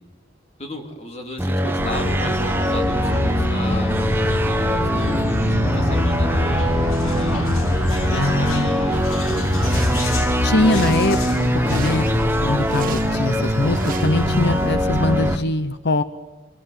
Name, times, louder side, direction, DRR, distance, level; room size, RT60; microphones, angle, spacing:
voice 1, 0.6-7.4 8.0-9.9, left 1 dB, 35° left, 3 dB, 3.4 m, -35 dB
sound 1, 1.4-15.4, equal, 10° right, 1.1 m, -22 dB
sound 2, 1.8-15.4, left 2 dB, 90° left, 1.5 m, -25 dB
voice 2, 8.1-8.7 10.4-11.2 11.5-12.1 12.4-16.0, left 2 dB, 55° left, 12 dB, 0.9 m, -22 dB
sound 3, 8.9-14.7, right 6 dB, 45° right, 1.5 m, -39 dB
24.5 x 23.0 x 9.7 m, 1.1 s
head